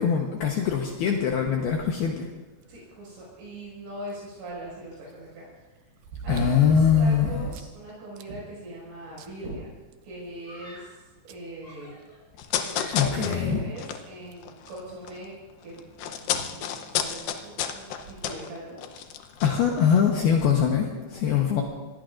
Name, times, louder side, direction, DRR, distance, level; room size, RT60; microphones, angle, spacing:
voice 1, 0.0-2.3 6.3-7.5 12.9-13.6 19.4-21.6, left 7 dB, 70° left, 1 dB, 2.6 m, -22 dB
voice 2, 2.7-5.7 6.2-9.7 10.0-11.0 11.3-11.9 12.6-15.3 15.6-18.8 21.2-21.4, right 1 dB, 75° right, -6 dB, 8.3 m, -40 dB
sound 1, 4.1-4.2 6.0-7.8 8.2-8.3 8.7-8.8 9.2-10.3 11.3-11.4 12.8-12.9 13.5-13.6 14.3-14.5 15.9-16.0 16.2-16.3 18.0-18.3 19.0-19.1, right 7 dB, 90° right, 2.0 m, -36 dB
Screaming, 10.4-11.1 11.6-13.4, left 1 dB, 30° left, 7.2 m, -48 dB
sound 2, 12.4-15.2 15.5-20.1 20.4-20.5, left 9 dB, 90° left, 2.0 m, -32 dB
26.5 x 20.5 x 2.6 m, 1.2 s
omnidirectional pair, 5.4 m